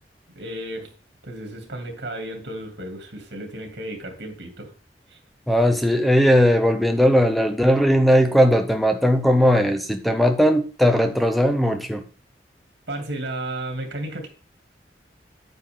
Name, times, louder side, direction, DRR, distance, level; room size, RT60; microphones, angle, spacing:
voice 1, 0.3-0.9 1.2-4.7 5.1-5.2 12.9-14.3, right 1 dB, 75° right, 2.7 m, -33 dB
voice 2, 5.5-12.0, equal, ahead, 1.0 m, -18 dB
9.5 x 9.1 x 3.7 m
head